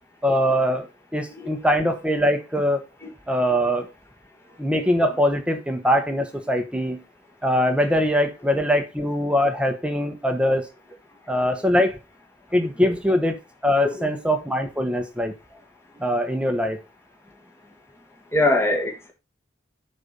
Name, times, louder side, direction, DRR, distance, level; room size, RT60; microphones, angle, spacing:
voice 1, 0.2-2.8 3.3-3.9 4.6-7.0 7.4-10.6 11.3-12.0 12.5-13.4 13.6-15.3 16.0-16.8, equal, 5° right, 1.0 m, -22 dB
voice 2, 18.3-19.1, left 2 dB, 15° left, 1.7 m, -23 dB
10.5 x 4.3 x 5.2 m
head